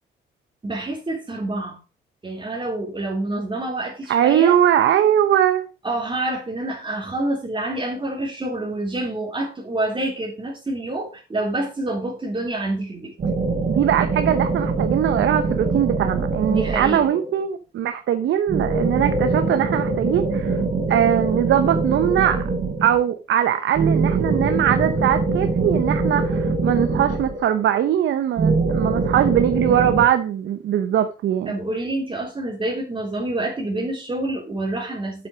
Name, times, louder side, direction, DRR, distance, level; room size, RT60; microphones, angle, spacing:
voice 1, 0.6-1.8 2.2-4.6 5.8-13.1 16.5-17.0 31.5-35.3, right 2 dB, 25° right, 3.4 m, -27 dB
voice 2, 4.1-5.7 13.7-20.6 20.9-22.4 22.8-31.5, right 10 dB, 70° right, 1.0 m, -21 dB
sound 1, 13.2-17.4 18.5-23.1 23.7-27.8 28.4-30.0, right 3 dB, 45° right, 4.3 m, -23 dB
8.1 x 7.5 x 5.0 m
cardioid pair, 90°, 20 cm